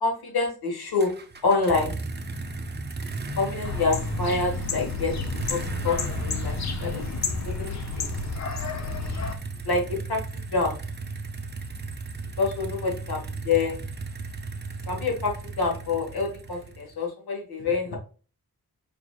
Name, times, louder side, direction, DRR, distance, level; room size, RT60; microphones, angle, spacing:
voice 1, 0.0-1.1 1.4-1.9 3.4-5.1 5.5-7.0 7.4-8.0 9.6-9.8 10.1-10.2 10.5-10.7 12.4-13.8 14.9-18.0, left 4 dB, 85° left, 1 dB, 1.5 m, -27 dB
sound 1, 1.0-17.0, right 3 dB, 30° right, 0.6 m, -35 dB
sound 2, 3.6-9.4, left 5 dB, 50° left, 0.6 m, -31 dB
4.9 x 3.2 x 2.3 m, 0.37 s
wide cardioid pair, 120°, 37 cm